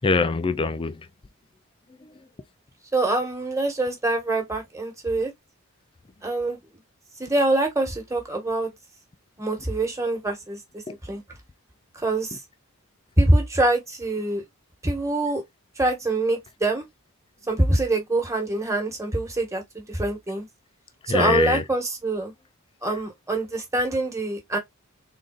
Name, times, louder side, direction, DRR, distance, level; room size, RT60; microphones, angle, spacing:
voice 1, 0.0-1.1 2.0-2.2 10.9-11.0 21.0-21.6 22.9-23.0, left 4 dB, 25° left, 0.4 m, -24 dB
voice 2, 2.9-5.3 6.2-6.6 7.2-8.7 9.4-10.6 11.1-11.2 11.9-12.4 13.2-14.4 14.8-15.4 15.8-16.8 17.5-20.5 21.1-22.3 22.8-24.6, right 2 dB, 15° right, 1.4 m, -24 dB
3.8 x 3.8 x 2.4 m
head